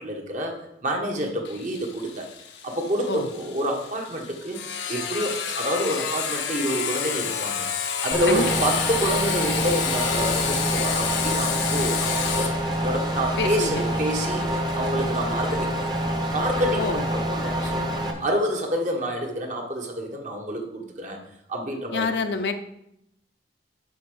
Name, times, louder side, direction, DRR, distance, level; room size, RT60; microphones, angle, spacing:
voice 1, 0.0-2.3 2.6-4.6 4.9-7.7 8.0-12.5 12.8-16.0 16.3-21.2 21.5-22.1, equal, 40° right, 2 dB, 1.5 m, -28 dB
Sawing, 1.5-16.9, left 7 dB, 90° left, 1.0 m, -30 dB
sound 1, 8.1-18.1, equal, 25° right, 1.1 m, -27 dB
voice 2, 8.3-8.7 13.4-13.8 16.7-17.0 21.9-22.5, left 4 dB, 70° left, 7 dB, 0.8 m, -27 dB
8.5 x 4.3 x 7.0 m, 0.78 s
head